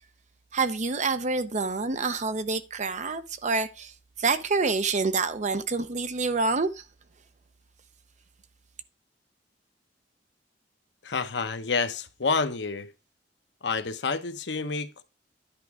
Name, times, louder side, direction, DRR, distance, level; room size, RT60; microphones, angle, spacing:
voice 1, 0.5-3.9 4.2-6.7, right 4 dB, 45° right, 0.7 m, -27 dB
voice 2, 11.0-12.9 13.6-15.0, left 4 dB, 75° left, 0.8 m, -29 dB
10.5 x 4.6 x 4.7 m
head